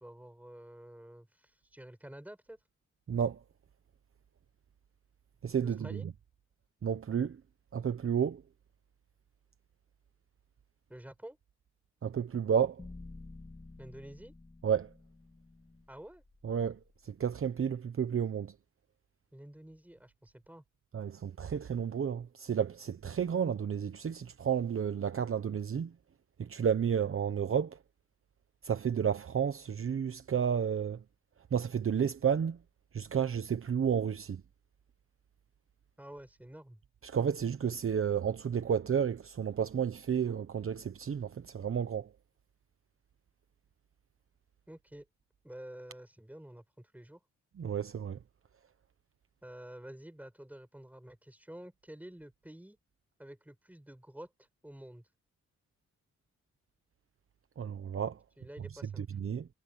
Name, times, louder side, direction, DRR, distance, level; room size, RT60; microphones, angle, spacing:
voice 1, 0.0-2.6 5.6-6.1 10.9-11.4 13.8-14.3 15.9-16.2 19.3-20.6 36.0-36.8 44.7-45.1 45.4-47.2 49.4-52.8 53.2-55.0 58.4-59.1, right 1 dB, 5° right, 5.3 m, -49 dB
voice 2, 3.1-3.4 5.4-6.0 6.8-7.4 7.7-8.4 12.0-12.8 14.6-14.9 16.4-16.8 17.0-18.5 20.9-25.9 26.4-27.8 28.6-31.0 31.5-32.6 32.9-34.4 37.0-42.1 47.6-48.2 57.6-58.2 59.0-59.5, right 7 dB, 50° right, 1.0 m, -31 dB
sound 1, 12.8-17.0, left 2 dB, 20° left, 2.9 m, -51 dB
wide cardioid pair, 115°, 29 cm